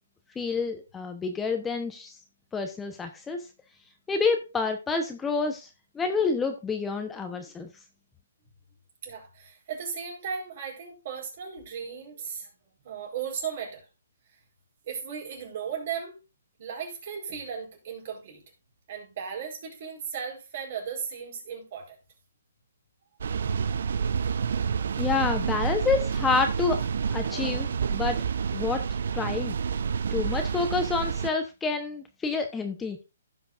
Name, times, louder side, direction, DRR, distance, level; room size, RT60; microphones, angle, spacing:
voice 1, 0.3-2.1 2.5-3.5 4.1-5.7 5.9-7.7 25.0-28.2 28.5-28.8 29.1-29.6 30.1-33.0, left 4 dB, 10° left, 1.0 m, -28 dB
voice 2, 9.0-12.5 12.8-13.9 14.8-16.2 16.6-18.4 18.9-22.0, right 7 dB, 50° right, 4.4 m, -36 dB
sound 1, 23.2-31.3, right 6 dB, 65° right, 0.6 m, -29 dB
16.0 x 6.0 x 2.5 m
hypercardioid pair, 145°, 0 cm